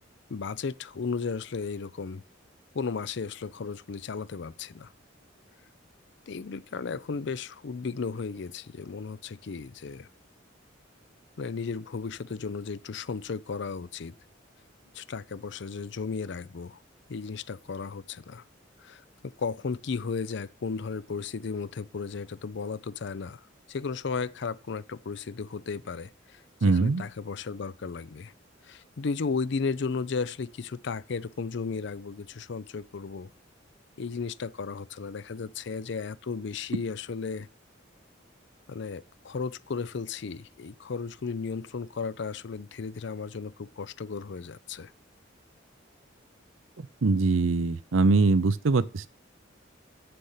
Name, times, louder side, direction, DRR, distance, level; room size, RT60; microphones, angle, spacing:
voice 1, 0.3-2.2 2.7-4.9 6.3-10.1 11.4-14.1 14.9-16.8 17.1-18.4 18.8-23.4 23.7-28.3 28.6-33.3 34.0-37.5 38.7-44.9, left 5 dB, 65° left, 0.5 m, -34 dB
voice 2, 26.6-27.0 47.0-49.1, right 3 dB, 85° right, 0.6 m, -22 dB
7.9 x 6.8 x 5.6 m
head